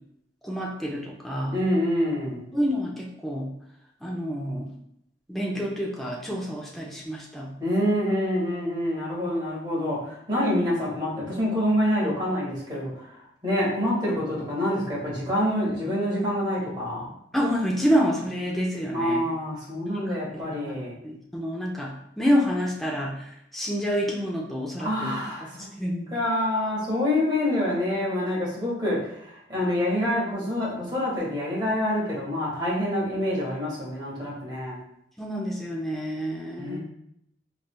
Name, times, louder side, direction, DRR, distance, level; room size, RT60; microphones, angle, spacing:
voice 1, 0.4-1.5 2.5-3.5 4.0-4.7 5.3-7.5 17.3-19.2 19.9-20.2 20.7-20.8 21.0-25.1 25.8-26.2 35.2-36.8, equal, ahead, -2 dB, 0.5 m, -28 dB
voice 2, 1.5-2.5 7.6-13.1 13.4-17.1 18.9-20.9 24.8-25.7 26.1-29.0 29.5-34.8 36.6-36.8, left 1 dB, 25° right, -6 dB, 1.5 m, -26 dB
3.9 x 3.2 x 2.2 m, 0.76 s
head